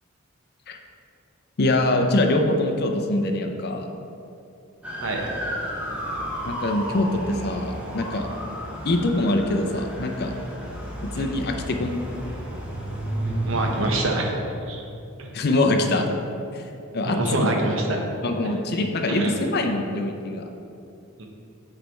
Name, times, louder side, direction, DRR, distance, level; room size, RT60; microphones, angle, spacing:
voice 1, 1.6-3.9 6.4-8.3 8.8-10.3 11.1-12.0 15.3-16.1 16.5-16.6 16.9-17.5 18.2-20.4, left 2 dB, 50° left, 4 dB, 0.6 m, -23 dB
sound 1, 4.8-13.9, equal, 5° right, 0.9 m, -32 dB
voice 2, 13.3-14.3 14.7-14.8 15.2-15.3 17.0-18.0 19.1-19.4 21.2-21.3, right 2 dB, 65° right, 1 dB, 0.9 m, -26 dB
9.3 x 3.3 x 4.5 m, 2.7 s
head